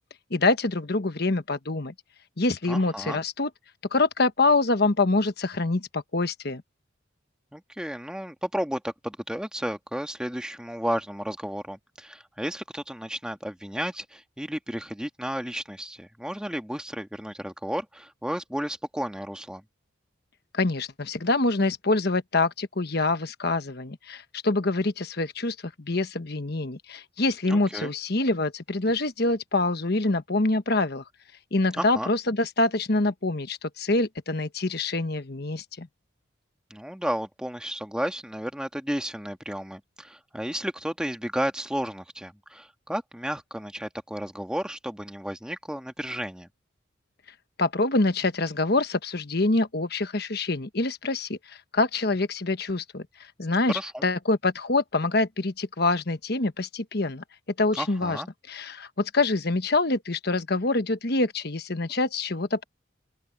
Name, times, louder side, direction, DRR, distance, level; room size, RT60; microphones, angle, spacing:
voice 1, 0.3-1.9 2.4-3.5 3.9-6.6 20.5-31.0 31.5-35.9 47.6-53.1 53.4-57.2 57.6-58.2 58.5-62.6, left 2 dB, 55° left, 1.2 m, -25 dB
voice 2, 2.7-3.2 7.5-19.6 27.5-27.9 31.8-32.1 36.7-46.5 53.7-54.1 57.7-58.3, equal, 5° right, 1.5 m, -33 dB
open air
head